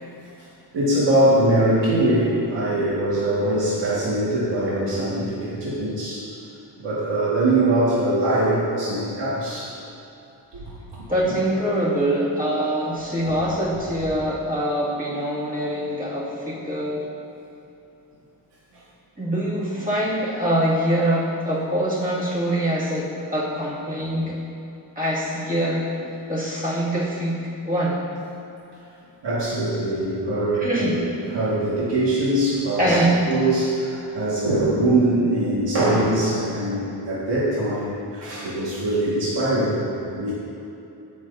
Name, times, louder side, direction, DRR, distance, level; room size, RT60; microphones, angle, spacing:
voice 1, 0.7-6.2 6.8-9.7 10.9-11.4 19.7-19.8 29.2-31.0 31.3-33.0 33.3-40.3, right 1 dB, 75° right, -8 dB, 1.7 m, -22 dB
voice 2, 11.1-17.0 19.2-24.4 25.0-25.9 26.3-28.0 30.6-31.0 32.8-33.2, right 1 dB, 20° right, -7 dB, 2.0 m, -24 dB
16.5 x 6.1 x 2.6 m, 2.8 s
wide cardioid pair, 150°, 42 cm